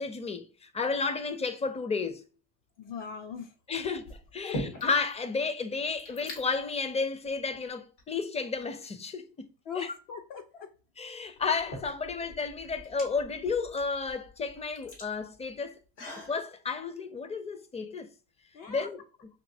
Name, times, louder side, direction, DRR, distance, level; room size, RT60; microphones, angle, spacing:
voice 1, 0.0-2.2 3.7-9.5 9.8-9.9 11.0-15.8 16.3-18.1 18.7-19.0, left 4 dB, 15° left, 0.4 m, -32 dB
sound 1, 2.8-3.3 4.0-5.1 5.4-5.5 5.7-6.4 7.2-7.4 8.0-8.9 10.6-10.7 11.4-16.4, left 1 dB, 90° left, 2.0 m, -42 dB
voice 2, 2.8-3.5 4.4-4.6 9.7-10.7 18.5-18.8, left 6 dB, 60° left, 0.7 m, -40 dB
5.2 x 2.8 x 2.7 m
supercardioid pair, 80°, 49 cm